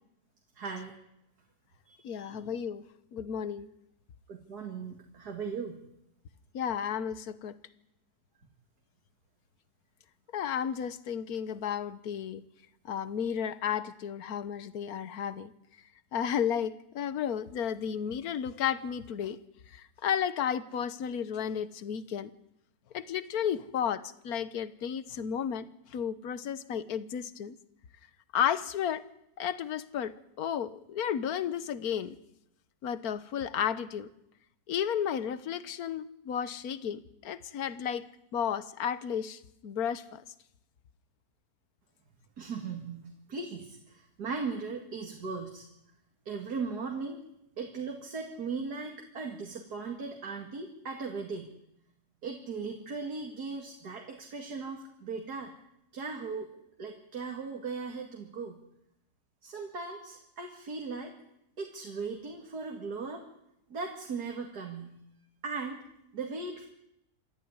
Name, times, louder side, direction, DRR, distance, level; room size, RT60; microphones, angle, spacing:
voice 1, 0.6-0.9 1.9-2.3 4.3-5.8 42.4-45.6 46.3-47.2 47.6-51.5 52.2-55.5 55.9-56.5 56.8-58.6 59.4-61.1 61.6-63.2 63.7-65.0 65.4-65.8 66.1-66.7, right 4 dB, 80° right, 2 dB, 2.6 m, -38 dB
voice 2, 2.0-2.8 3.1-3.7 6.5-7.5 10.3-12.4 12.9-15.5 16.1-19.4 20.0-22.3 22.9-27.5 28.3-29.0 29.4-30.1 30.4-32.2 32.8-34.1 34.7-38.0 38.3-40.2, left 8 dB, 70° left, 14 dB, 1.5 m, -33 dB
27.0 x 12.5 x 9.8 m, 0.81 s
omnidirectional pair, 1.7 m